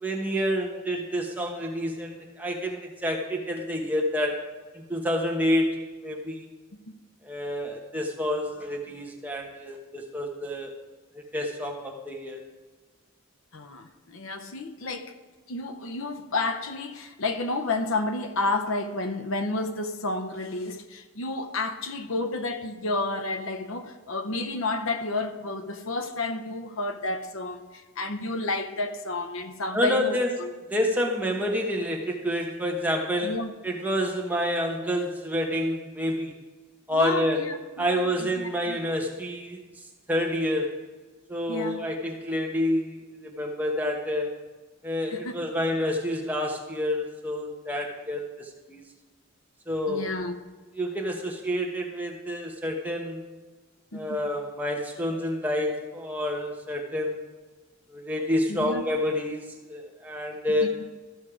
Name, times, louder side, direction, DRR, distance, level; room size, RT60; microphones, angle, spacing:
voice 1, 0.0-4.5 4.7-6.4 7.2-10.7 11.1-12.4 29.7-30.3 30.7-33.4 33.6-36.4 36.9-37.4 37.8-39.6 40.1-40.8 41.3-44.3 44.8-48.8 49.7-50.1 50.7-53.2 53.9-57.2 57.9-60.7, equal, 10° right, 1 dB, 1.1 m, -28 dB
voice 2, 13.5-15.1 15.5-30.5 33.2-33.5 36.9-38.8 41.5-41.8 45.1-45.4 49.9-50.4 53.9-54.2 58.5-58.8 60.5-60.7, left 2 dB, 75° left, 9 dB, 0.8 m, -31 dB
13.5 x 6.4 x 4.9 m, 1.3 s
head